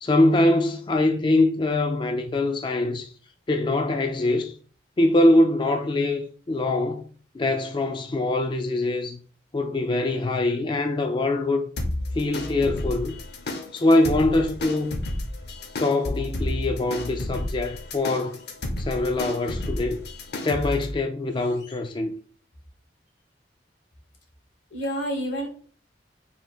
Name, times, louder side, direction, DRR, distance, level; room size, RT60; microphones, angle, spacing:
voice 1, 0.0-3.1 3.5-4.5 5.0-7.0 7.3-9.2 9.5-11.7 12.1-13.1 13.7-15.0 15.8-18.4 18.8-20.0 20.3-22.1, left 2 dB, 25° left, 0.3 m, -23 dB
sound 1, 11.8-20.9, left 1 dB, 60° left, 0.7 m, -32 dB
voice 2, 21.4-21.7 24.7-25.5, equal, 90° left, 1.4 m, -30 dB
3.4 x 2.6 x 4.3 m
head